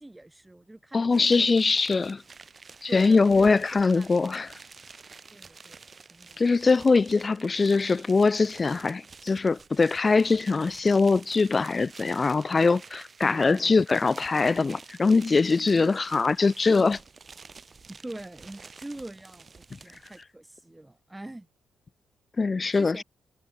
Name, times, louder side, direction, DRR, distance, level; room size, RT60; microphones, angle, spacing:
voice 1, 0.0-1.5 1.9-2.1 2.9-3.5 3.9-4.1 5.3-6.4 13.2-13.8 15.7-15.9 17.9-21.5 22.7-23.0, right 1 dB, 10° right, 2.4 m, -43 dB
voice 2, 0.9-2.2 2.8-4.5 6.4-17.0 22.4-23.0, left 4 dB, 30° left, 0.3 m, -22 dB
sound 1, 1.1-20.2, right 4 dB, 35° right, 3.6 m, -49 dB
cardioid pair, 90°, 0 cm